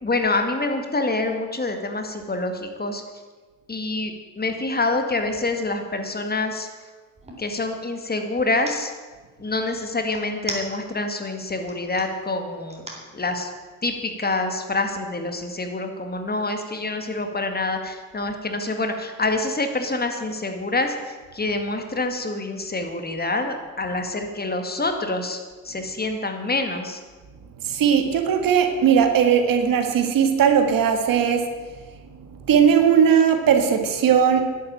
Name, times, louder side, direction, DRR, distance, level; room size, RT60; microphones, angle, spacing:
voice 1, 0.0-3.0 3.7-6.7 7.4-8.9 9.4-12.8 13.1-13.5 13.8-25.4 25.6-27.0, left 2 dB, 30° left, 5 dB, 2.1 m, -26 dB
sound 1, 5.3-5.5 5.9-7.5 8.4-8.8 10.1-11.1 11.5-12.1 12.7-13.1, right 1 dB, 20° right, 3.8 m, -36 dB
voice 2, 27.6-31.5 32.5-34.5, right 7 dB, 80° right, 6 dB, 1.8 m, -18 dB
11.5 x 8.3 x 8.9 m, 1.4 s
cardioid pair, 75°, 33 cm